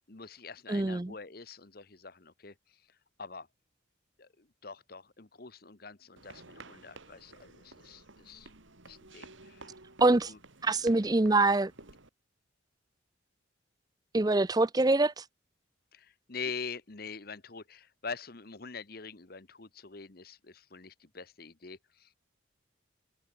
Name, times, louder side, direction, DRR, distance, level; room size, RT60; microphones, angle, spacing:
voice 1, 0.1-2.5 3.2-3.5 4.2-8.5 8.8-9.7 10.3-10.4 15.9-22.1, left 5 dB, 50° left, 1.1 m, -44 dB
voice 2, 0.7-1.1 10.0-10.3 10.6-11.7 14.1-15.2, right 2 dB, 20° right, 0.5 m, -25 dB
sound 1, 6.2-12.1, right 3 dB, 80° right, 3.1 m, -53 dB
head